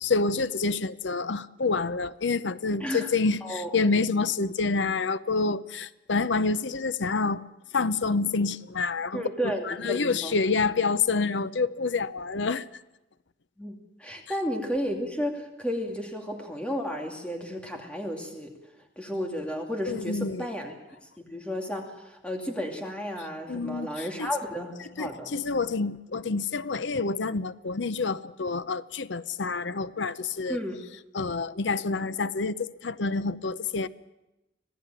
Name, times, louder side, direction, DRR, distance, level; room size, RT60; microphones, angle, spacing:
voice 1, 0.0-7.4 7.7-12.8 19.9-20.5 23.5-24.3 25.0-30.6 31.1-33.9, left 4 dB, 80° left, 0.7 m, -28 dB
voice 2, 3.4-3.7 9.1-10.3 13.6-18.5 19.0-20.7 21.2-25.3 30.5-30.8, equal, 5° left, 2.5 m, -33 dB
25.5 x 17.0 x 9.1 m
head